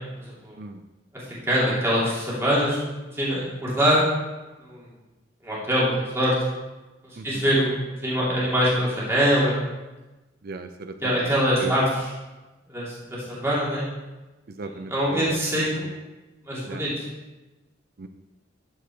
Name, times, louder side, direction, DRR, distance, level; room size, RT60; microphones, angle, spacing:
voice 1, 0.2-0.6 1.5-2.8 3.1-4.1 4.6-4.9 5.4-6.3 7.0-9.5 11.0-11.9 12.7-13.9 14.9-15.9 16.5-17.1, equal, 15° right, -8 dB, 2.5 m, -23 dB
voice 2, 10.4-11.1 11.6-11.7 14.5-15.4 15.7-15.9 16.6-16.8 18.0-18.1, right 3 dB, 55° right, 7 dB, 0.5 m, -36 dB
12.5 x 5.2 x 4.5 m, 1.1 s
head